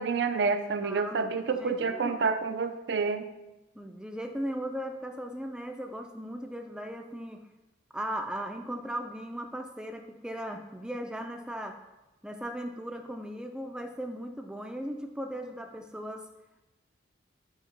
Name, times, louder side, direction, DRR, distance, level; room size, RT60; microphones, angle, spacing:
voice 1, 0.0-3.3, right 4 dB, 65° right, 9 dB, 0.4 m, -28 dB
voice 2, 0.8-2.3 3.7-7.4 7.9-11.8 12.2-16.2, equal, 5° right, 5 dB, 0.4 m, -37 dB
6.4 x 2.9 x 5.2 m, 1.0 s
head